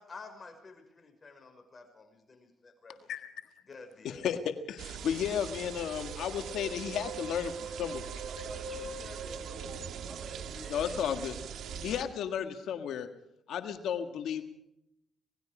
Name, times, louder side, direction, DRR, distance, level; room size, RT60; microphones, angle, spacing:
voice 1, 0.0-3.0 3.6-4.3, left 4 dB, 35° left, 6 dB, 5.6 m, -50 dB
voice 2, 4.0-8.1 10.7-11.4 11.8-13.1 13.5-14.4, left 8 dB, 75° left, 7 dB, 1.6 m, -33 dB
sound 1, 4.8-12.0, right 6 dB, 75° right, 2.0 m, -40 dB
voice 3, 8.3-11.5, right 2 dB, 30° right, 5 dB, 7.1 m, -50 dB
26.5 x 19.5 x 5.0 m, 0.80 s
cardioid pair, 90°, 0 cm